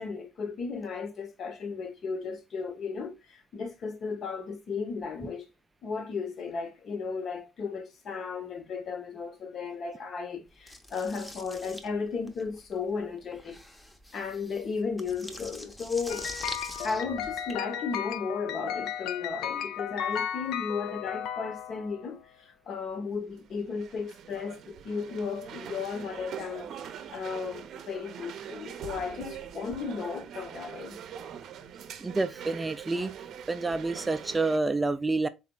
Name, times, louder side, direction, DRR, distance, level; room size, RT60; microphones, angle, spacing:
voice 1, 0.0-5.5 5.8-13.6 14.1-16.3 16.8-31.0, left 5 dB, 45° left, 0.8 m, -35 dB
sound 1, 10.7-17.5, left 1 dB, 10° left, 0.7 m, -44 dB
sound 2, 16.1-22.1, left 9 dB, 70° left, 0.5 m, -35 dB
sound 3, 23.0-34.6, right 8 dB, 55° right, 0.6 m, -43 dB
voice 2, 32.0-33.1 33.5-35.3, right 3 dB, 15° right, 0.3 m, -28 dB
4.0 x 3.9 x 2.2 m
cardioid pair, 130°, 0 cm